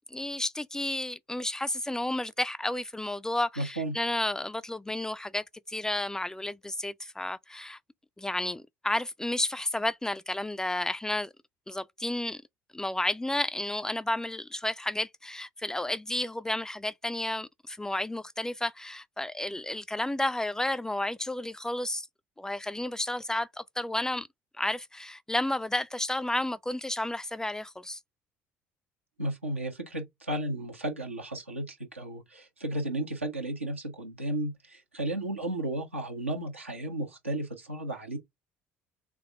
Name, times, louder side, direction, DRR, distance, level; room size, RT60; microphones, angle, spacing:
voice 1, 0.1-7.8 8.2-11.3 11.7-12.4 12.7-22.1 22.4-24.3 24.6-28.0, left 1 dB, 10° left, 0.4 m, -32 dB
voice 2, 3.6-3.9 29.2-38.2, right 1 dB, 85° right, 1.0 m, -34 dB
3.7 x 3.4 x 3.6 m
figure-of-eight pair, 55°, 7 cm